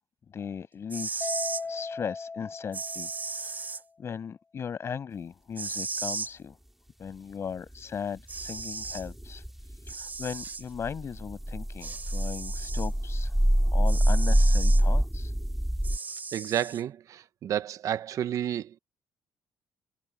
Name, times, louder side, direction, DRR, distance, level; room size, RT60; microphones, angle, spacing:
voice 1, 0.3-1.3 1.7-6.6 7.0-13.3 13.7-15.3, left 7 dB, 45° left, 6.8 m, -38 dB
sound 1, 0.8-1.6 2.7-3.8 5.6-6.3 7.8-7.9 8.3-9.0 9.9-10.6 11.8-12.9 13.8-14.8 15.8-16.8, right 4 dB, 30° right, 4.6 m, -36 dB
Mallet percussion, 1.2-3.7, left 4 dB, 20° left, 2.0 m, -37 dB
sound 2, 8.3-9.9 10.3-10.4 10.7-16.0, equal, 5° right, 2.6 m, -25 dB
voice 2, 16.3-18.8, right 10 dB, 65° right, 0.9 m, -31 dB
cardioid pair, 95°, 6 cm